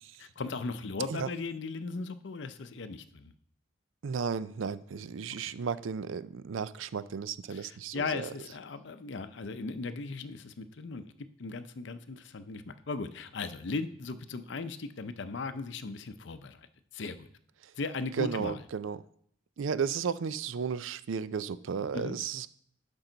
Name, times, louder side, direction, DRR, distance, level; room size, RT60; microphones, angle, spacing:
voice 1, 0.2-3.3 5.3-5.4 7.5-11.0 11.4-16.6 16.9-17.3 17.8-18.6 21.9-22.2, left 3 dB, 65° left, 11 dB, 0.6 m, -37 dB
voice 2, 4.0-8.3 18.2-19.0 19.6-22.5, right 6 dB, 80° right, 15 dB, 0.4 m, -34 dB
11.5 x 5.3 x 3.9 m, 0.65 s
head